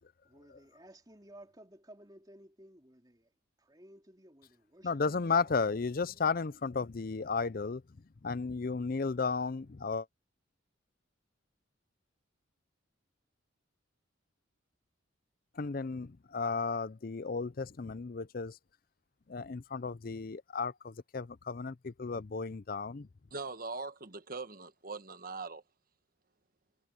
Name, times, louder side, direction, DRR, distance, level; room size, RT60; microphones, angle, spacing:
voice 1, 0.3-3.3 3.6-6.2, right 1 dB, 20° right, 3.5 m, -57 dB
voice 2, 4.8-7.8 8.2-10.1 15.6-18.6 19.3-23.1, left 4 dB, 45° left, 0.5 m, -34 dB
voice 3, 23.3-25.6, right 3 dB, 45° right, 1.3 m, -41 dB
head